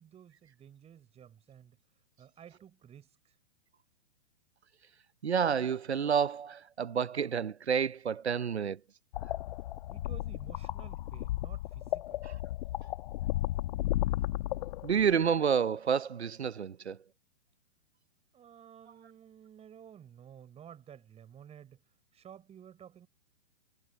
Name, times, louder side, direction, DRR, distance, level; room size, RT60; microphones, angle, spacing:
voice 1, 0.0-1.8 2.2-3.1 9.9-12.3 18.3-21.8 22.1-23.1, right 9 dB, 20° right, 6.5 m, -53 dB
voice 2, 5.2-8.8 14.8-17.0, right 7 dB, 90° right, 0.8 m, -29 dB
sound 1, 9.1-15.2, left 15 dB, 50° left, 1.5 m, -34 dB
hypercardioid pair, 125°, 32 cm